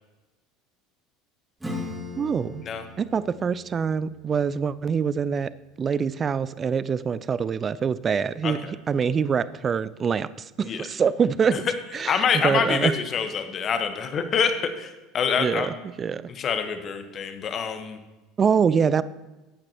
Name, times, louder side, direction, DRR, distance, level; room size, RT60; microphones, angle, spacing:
Acoustic guitar / Strum, 1.6-6.8, left 2 dB, 10° right, 2.5 m, -40 dB
voice 1, 2.2-2.6 3.0-5.5 5.8-11.7 11.9-12.9 15.4-16.2 18.4-19.0, right 6 dB, 30° right, 17 dB, 0.4 m, -25 dB
voice 2, 12.0-14.5 14.8-15.8 16.3-18.0, left 6 dB, 40° left, 8 dB, 1.1 m, -26 dB
13.5 x 8.8 x 2.9 m, 1.1 s
figure-of-eight pair, 70°, 0 cm